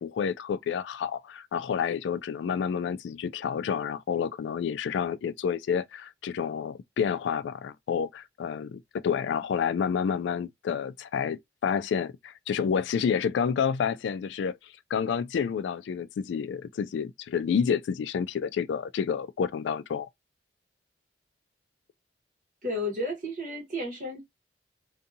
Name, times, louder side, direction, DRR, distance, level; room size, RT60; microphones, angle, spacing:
voice 1, 0.0-20.1, left 7 dB, 80° left, 0.3 m, -29 dB
voice 2, 22.6-24.2, left 1 dB, 45° right, 1.2 m, -32 dB
2.6 x 2.4 x 2.6 m
head